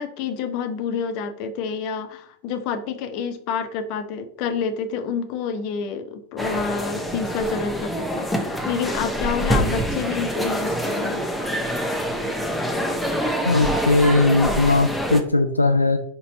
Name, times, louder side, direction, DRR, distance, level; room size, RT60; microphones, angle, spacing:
voice 1, 0.0-11.3, left 6 dB, 45° left, 9 dB, 0.8 m, -28 dB
sound 1, 6.4-15.2, equal, 5° left, 1.0 m, -25 dB
voice 2, 13.4-16.0, left 2 dB, 85° left, 6 dB, 0.4 m, -19 dB
5.3 x 4.2 x 4.2 m, 0.62 s
figure-of-eight pair, 90°, 0 cm